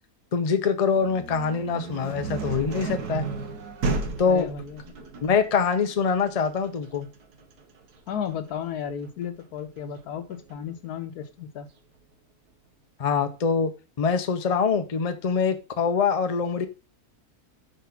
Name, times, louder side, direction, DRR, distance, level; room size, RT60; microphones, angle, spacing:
voice 1, 0.3-3.3 4.2-4.5 5.2-7.1 13.0-13.7 14.0-16.7, left 6 dB, 45° left, 8 dB, 0.4 m, -24 dB
sound 1, 0.9-10.7, right 3 dB, 85° right, 1.5 m, -34 dB
voice 2, 4.2-5.1 8.1-11.7, left 8 dB, 80° left, 9 dB, 1.4 m, -34 dB
5.1 x 4.1 x 5.7 m, 0.32 s
omnidirectional pair, 1.6 m